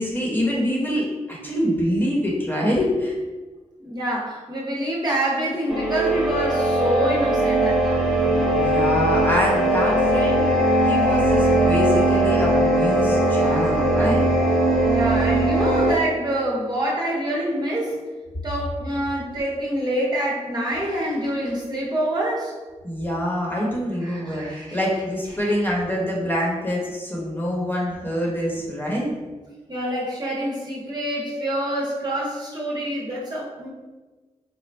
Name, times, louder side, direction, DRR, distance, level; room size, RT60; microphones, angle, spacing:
voice 1, 0.0-3.2 8.2-10.4 10.8-14.2 22.8-29.1, equal, 15° left, -4 dB, 1.2 m, -25 dB
voice 2, 3.8-8.1 14.8-18.0 18.4-22.5 24.0-24.8 29.7-33.7, right 1 dB, 35° right, -4 dB, 0.9 m, -26 dB
sound 1, 5.7-15.9, right 1 dB, ahead, 0.8 m, -20 dB
4.1 x 2.3 x 3.3 m, 1.3 s
cardioid pair, 65°, 13 cm